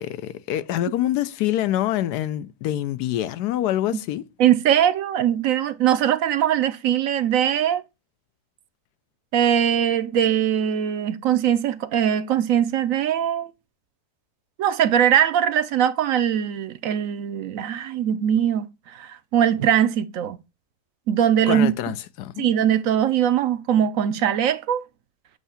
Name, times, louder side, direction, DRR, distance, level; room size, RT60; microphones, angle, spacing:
voice 1, 0.0-4.2 21.5-22.5, left 12 dB, 85° left, 1.2 m, -25 dB
voice 2, 4.4-7.8 9.3-13.5 14.6-20.4 21.1-21.7 22.4-24.8, right 10 dB, 65° right, 0.9 m, -21 dB
8.1 x 2.7 x 5.6 m
omnidirectional pair, 1.7 m